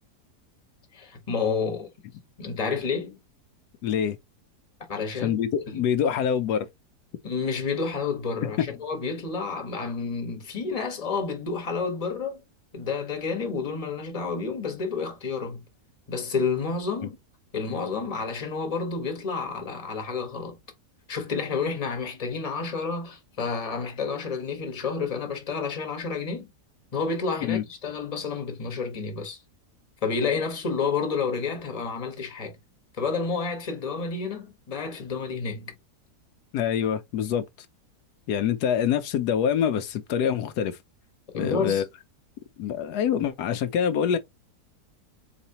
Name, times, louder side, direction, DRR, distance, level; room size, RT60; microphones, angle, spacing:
voice 1, 0.9-1.9 2.4-3.2 4.9-5.4 5.7-5.8 7.2-12.4 12.7-15.6 16.1-17.2 17.5-20.6 21.1-26.5 26.9-29.4 30.0-32.6 33.0-35.7 41.3-41.8, left 5 dB, 25° left, 1.1 m, -30 dB
voice 2, 3.8-4.2 5.2-6.7 8.4-8.5 27.4-27.6 36.5-37.4 38.3-40.8 41.3-41.8 42.6-44.2, left 8 dB, 80° left, 1.1 m, -25 dB
4.2 x 4.0 x 2.8 m
omnidirectional pair, 1.7 m